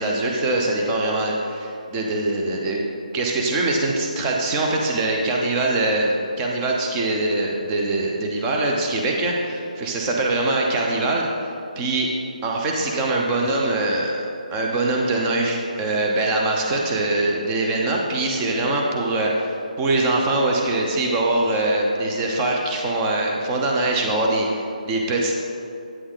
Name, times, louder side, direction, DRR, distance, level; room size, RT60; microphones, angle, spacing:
voice 1, 0.0-2.8 3.1-12.1 12.4-14.2 14.5-25.3, right 2 dB, 15° right, -1 dB, 0.7 m, -23 dB
8.9 x 8.4 x 3.9 m, 2.6 s
hypercardioid pair, 170°, 5 cm